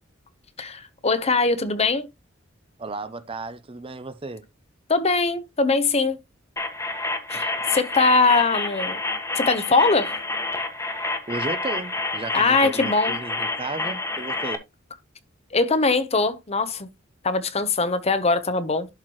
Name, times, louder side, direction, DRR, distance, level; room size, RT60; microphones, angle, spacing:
voice 1, 0.6-2.1 4.9-6.2 7.3-9.0 9.4-10.1 12.3-13.2 15.5-16.9 17.2-18.9, left 3 dB, 30° left, 0.9 m, -21 dB
voice 2, 2.8-4.4 7.3-7.4 11.3-14.6, right 3 dB, 30° right, 0.7 m, -34 dB
sound 1, 6.6-14.6, left 2 dB, 15° left, 1.3 m, -29 dB
11.5 x 4.6 x 3.1 m
head